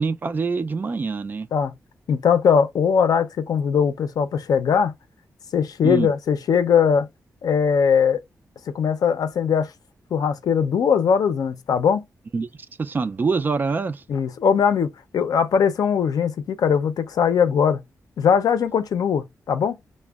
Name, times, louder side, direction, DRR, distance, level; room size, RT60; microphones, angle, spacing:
voice 1, 0.0-1.5 5.8-6.1 12.3-12.5 12.8-14.0, right 4 dB, 30° right, 0.3 m, -24 dB
voice 2, 2.1-4.9 5.5-7.1 7.4-8.2 8.7-9.7 10.1-12.0 14.1-17.8 18.2-19.8, left 7 dB, 85° left, 0.5 m, -20 dB
5.1 x 2.0 x 2.3 m
wide cardioid pair, 180°, 6 cm